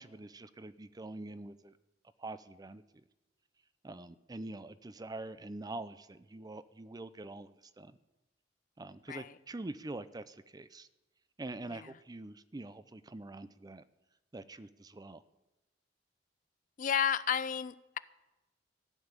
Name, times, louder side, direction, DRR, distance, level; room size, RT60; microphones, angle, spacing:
voice 1, 0.0-1.7 2.2-2.8 3.8-8.0 8.8-10.9 11.4-13.8 14.3-15.2, right 2 dB, 20° right, 14 dB, 0.5 m, -45 dB
voice 2, 16.8-18.0, left 8 dB, 45° left, 17 dB, 0.4 m, -32 dB
14.5 x 6.9 x 9.7 m, 1.0 s
head